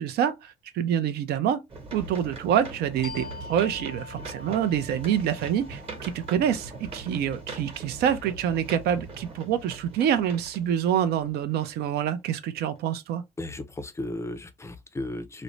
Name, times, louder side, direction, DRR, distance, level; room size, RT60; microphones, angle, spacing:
voice 1, 0.0-1.6 1.9-13.2, right 9 dB, 70° right, 0.5 m, -26 dB
sound 1, 1.7-12.0 12.6-12.7, right 3 dB, 35° right, 1.0 m, -41 dB
sound 2, 3.0-8.3, left 4 dB, 65° left, 0.5 m, -46 dB
voice 2, 13.4-15.4, left 2 dB, 15° left, 0.4 m, -35 dB
2.5 x 2.0 x 3.1 m
cardioid pair, 110°, 17 cm